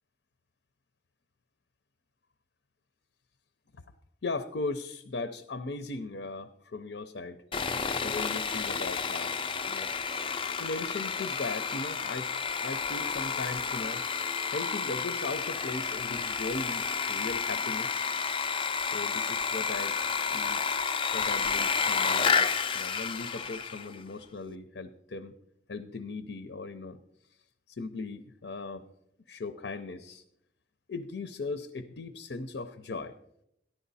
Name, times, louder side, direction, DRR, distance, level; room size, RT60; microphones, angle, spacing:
voice 1, 4.2-7.4 8.0-9.4 9.7-9.9 10.6-12.3 12.6-14.0 14.5-16.8 17.1-18.1 18.8-20.0 20.3-20.6 21.1-25.4 25.7-27.0 27.7-28.9 29.3-30.2 30.9-33.1, left 3 dB, 70° left, 10 dB, 0.6 m, -38 dB
Sawing, 7.5-23.9, left 5 dB, 30° left, 0.4 m, -31 dB
13.5 x 11.5 x 4.1 m, 0.78 s
head